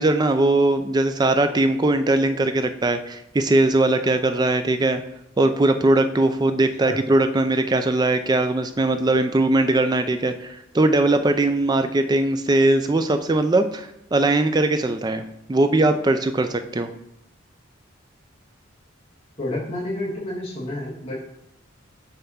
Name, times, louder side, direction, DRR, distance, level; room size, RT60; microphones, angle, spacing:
voice 1, 0.0-5.0 5.4-15.2 15.5-16.9, right 2 dB, 20° right, 8 dB, 0.3 m, -20 dB
voice 2, 19.4-21.2, left 1 dB, 25° left, -8 dB, 1.8 m, -29 dB
5.5 x 3.4 x 5.5 m, 0.84 s
head